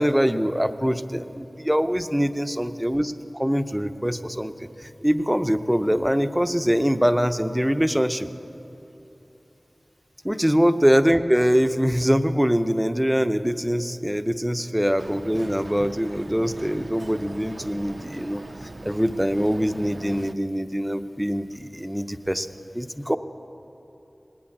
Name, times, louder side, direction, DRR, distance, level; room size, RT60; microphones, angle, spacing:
voice 1, 0.0-8.3 10.2-18.4 18.8-23.2, equal, 5° right, 9 dB, 0.6 m, -23 dB
Boat Water vehicle, 15.0-20.3, right 2 dB, 50° right, 0.5 m, -40 dB
19.0 x 8.6 x 8.6 m, 2.9 s
wide cardioid pair, 50°, 0 cm